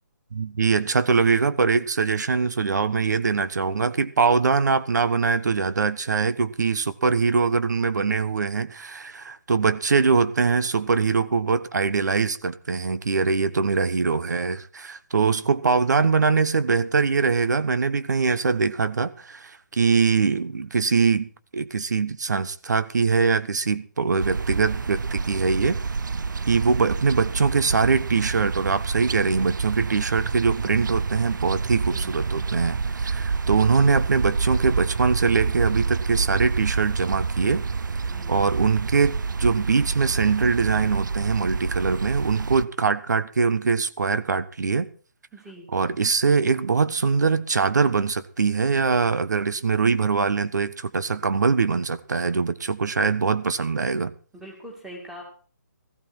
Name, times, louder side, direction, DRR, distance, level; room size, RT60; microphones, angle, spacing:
voice 1, 0.3-25.8 26.5-37.6 38.3-44.9 45.7-54.1, right 5 dB, 65° right, 1.3 m, -22 dB
voice 2, 13.4-13.8 31.9-32.1 38.1-38.3 45.3-45.7 54.3-55.2, equal, 5° right, 2.5 m, -43 dB
sound 1, 24.2-42.6, right 4 dB, 85° right, 0.7 m, -28 dB
16.0 x 15.0 x 4.4 m
hypercardioid pair, 170°, 10 cm